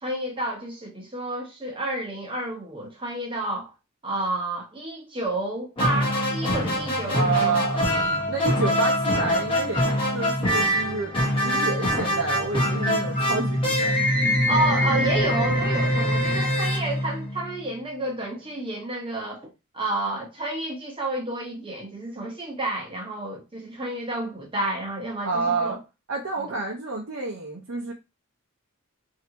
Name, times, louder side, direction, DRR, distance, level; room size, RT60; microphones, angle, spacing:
voice 1, 0.0-3.7 4.0-7.5 14.5-25.8 26.4-26.5, right 2 dB, 25° right, 1.1 m, -30 dB
sound 1, 5.8-17.6, equal, 25° left, 1.1 m, -24 dB
voice 2, 7.1-7.9 8.3-14.1 25.2-25.8 26.1-27.9, right 4 dB, 70° right, 0.7 m, -29 dB
3.4 x 2.8 x 2.8 m
head